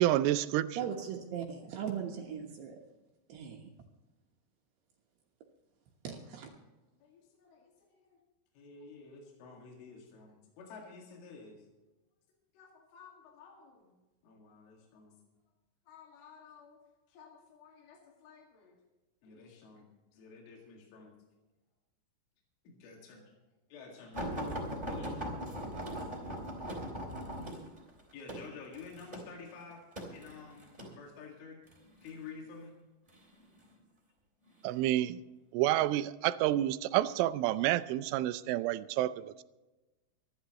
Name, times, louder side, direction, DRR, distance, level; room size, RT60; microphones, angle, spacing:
voice 1, 0.0-0.8 34.6-35.2 35.5-39.4, right 14 dB, 85° right, 13 dB, 3.1 m, -29 dB
voice 2, 0.8-2.8 3.3-3.7 6.0-6.5, right 8 dB, 70° right, 1 dB, 3.0 m, -39 dB
voice 3, 7.0-8.2 8.6-11.7 12.5-13.9 14.2-15.2 15.9-16.8 17.1-18.8 19.2-21.1 22.7-23.2 23.7-26.4 28.1-29.8 30.1-31.6 32.0-32.7, left 5 dB, 80° left, -1 dB, 4.6 m, -52 dB
sound 1, 24.1-31.0 31.7-32.1 33.1-33.7 34.5-34.7 35.0-35.1, equal, 10° right, 2.5 m, -39 dB
25.5 x 11.5 x 3.0 m, 1.1 s
omnidirectional pair, 5.6 m